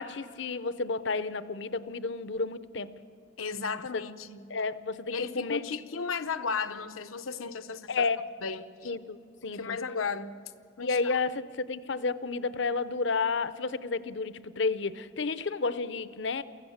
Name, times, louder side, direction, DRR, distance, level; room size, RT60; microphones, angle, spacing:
voice 1, 0.0-2.9 4.5-5.6 7.9-8.2 8.8-9.8 10.8-16.4, left 4 dB, 60° left, 15 dB, 0.7 m, -31 dB
voice 2, 3.4-4.5 5.1-8.1 8.4-8.9 9.4-10.4 10.8-11.1, left 5 dB, 90° left, 10 dB, 0.9 m, -35 dB
23.5 x 15.5 x 7.2 m, 2.3 s
head